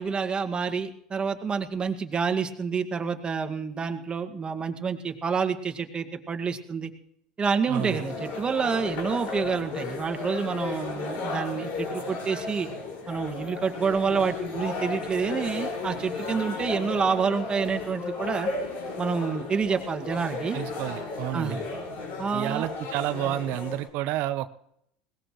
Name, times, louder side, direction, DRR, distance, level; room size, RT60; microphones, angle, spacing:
voice 1, 0.0-6.9 7.4-12.7 13.1-18.5 19.0-20.6 21.3-21.6 22.2-22.7, right 5 dB, 30° right, 5 dB, 1.9 m, -28 dB
sound 1, 7.7-23.9, left 3 dB, 60° left, 5.4 m, -34 dB
voice 2, 7.7-8.0 20.5-21.6 22.3-24.5, right 14 dB, 65° right, 12 dB, 0.8 m, -30 dB
21.5 x 19.0 x 3.1 m, 0.74 s
hypercardioid pair, 80°, 3 cm